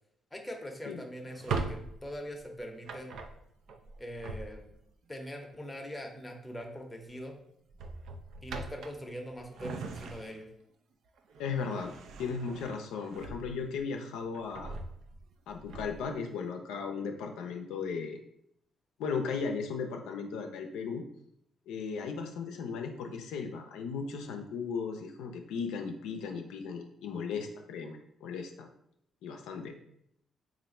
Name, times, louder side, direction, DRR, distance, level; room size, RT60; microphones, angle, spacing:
voice 1, 0.3-3.2 4.0-4.7 5.1-7.3 8.4-10.5, equal, 10° left, 2 dB, 0.7 m, -42 dB
Drawer open or close, 1.3-4.9 6.4-6.7 7.0-7.2 7.7-10.6 11.1-13.8 14.2-16.1, right 4 dB, 75° right, 0.4 m, -41 dB
voice 2, 11.4-11.9 12.2-14.7 15.5-18.2 19.0-21.0 21.7-28.7 29.2-29.8, left 5 dB, 90° left, 4 dB, 0.4 m, -36 dB
3.2 x 2.5 x 4.1 m, 0.73 s
cardioid pair, 90°, 0 cm